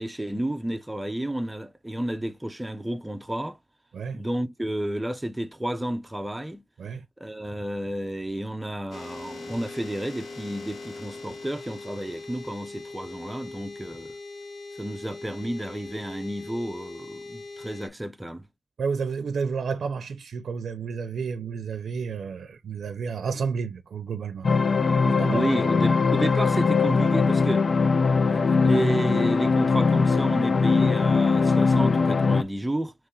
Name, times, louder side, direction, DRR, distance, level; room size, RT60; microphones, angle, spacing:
voice 1, 0.0-3.6 4.1-6.6 7.2-14.1 14.8-18.5 25.3-27.6 28.3-32.9, right 1 dB, 10° right, 0.5 m, -31 dB
sound 1, 8.9-17.9, left 3 dB, 80° left, 1.8 m, -41 dB
voice 2, 18.8-24.5 25.0-25.5, right 5 dB, 70° right, 0.6 m, -31 dB
sound 2, 24.4-32.4, left 4 dB, 45° left, 0.4 m, -21 dB
4.2 x 3.1 x 3.7 m
wide cardioid pair, 125°, 0 cm